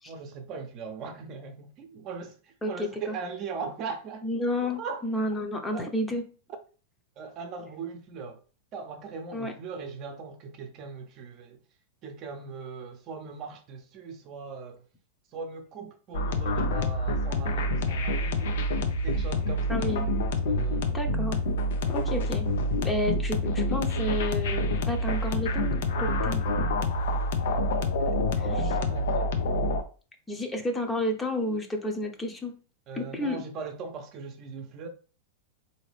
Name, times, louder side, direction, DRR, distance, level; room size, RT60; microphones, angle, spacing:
voice 1, 0.1-4.3 4.8-5.0 5.7-5.9 7.2-8.4 8.7-11.6 12.0-14.8 15.3-18.7 19.0-19.8 20.5-20.9 28.4-29.3 32.9-34.9, right 5 dB, 45° right, 0.7 m, -39 dB
voice 2, 2.6-3.1 4.2-6.2 9.3-9.5 19.7-20.1 20.9-21.4 21.9-22.5 22.8-26.4 28.4-28.7 30.3-32.5 32.9-33.4, left 1 dB, 15° left, 0.8 m, -31 dB
sound 1, 16.1-29.8, left 1 dB, 75° left, 0.6 m, -27 dB
3.9 x 2.8 x 3.3 m
hypercardioid pair, 115°, 0 cm